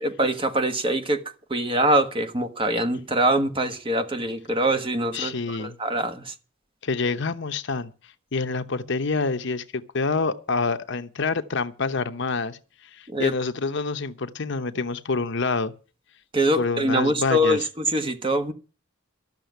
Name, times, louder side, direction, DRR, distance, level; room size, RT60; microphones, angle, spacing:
voice 1, 0.0-1.2 1.5-6.3 13.1-13.3 16.3-18.5, right 1 dB, 25° right, 1.4 m, -24 dB
voice 2, 5.1-5.8 6.8-7.9 8.3-15.7 16.5-17.7, left 4 dB, 65° left, 0.9 m, -27 dB
13.5 x 6.6 x 9.3 m
head